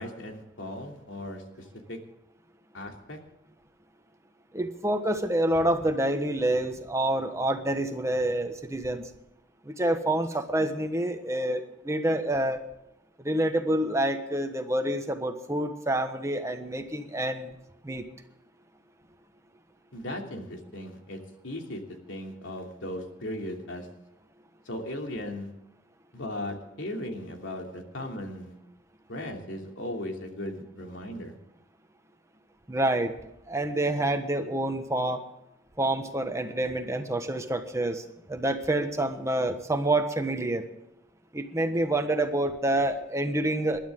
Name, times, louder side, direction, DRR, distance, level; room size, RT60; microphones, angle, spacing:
voice 1, 0.0-2.0 2.7-3.2 19.9-23.9 24.7-25.7 26.1-28.5 29.1-31.3, left 1 dB, 90° left, 2 dB, 2.9 m, -37 dB
voice 2, 4.5-9.0 9.7-12.6 13.2-17.5 17.8-18.0 32.7-33.1 33.5-35.2 35.8-38.0 38.3-40.6 41.3-43.8, right 1 dB, 15° right, 7 dB, 1.3 m, -27 dB
20.5 x 12.0 x 3.8 m, 0.85 s
head